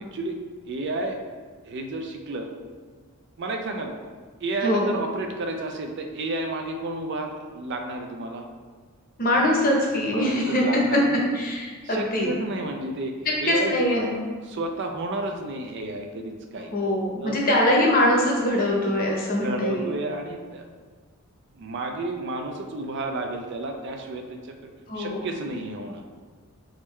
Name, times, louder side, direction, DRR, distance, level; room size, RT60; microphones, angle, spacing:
voice 1, 0.7-1.2 1.6-2.5 3.4-3.9 4.4-8.5 9.9-11.2 11.8-13.7 14.4-16.7 17.2-17.4 19.2-20.7 21.5-26.0, right 2 dB, 50° right, 4 dB, 0.4 m, -31 dB
voice 2, 9.2-10.6 10.9-11.0 11.3-12.3 13.2-14.1 16.7-19.9 24.9-25.3, left 1 dB, 40° left, -2 dB, 0.8 m, -23 dB
4.2 x 3.6 x 3.1 m, 1.5 s
head